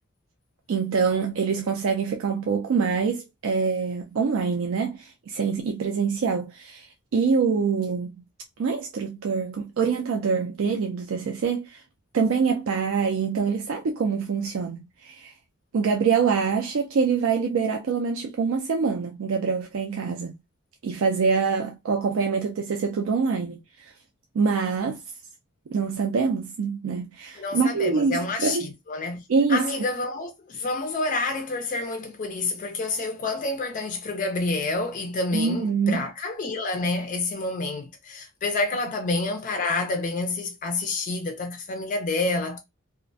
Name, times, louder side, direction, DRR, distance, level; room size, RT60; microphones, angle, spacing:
voice 1, 0.7-6.9 7.1-8.2 8.6-11.8 12.1-15.3 15.7-20.3 20.8-23.9 24.3-25.0 25.7-28.7 29.3-29.7 35.3-36.0, right 5 dB, 65° right, 0.4 m, -25 dB
voice 2, 27.4-29.2 29.5-42.6, left 3 dB, 35° left, 0.4 m, -28 dB
2.3 x 2.1 x 2.5 m
head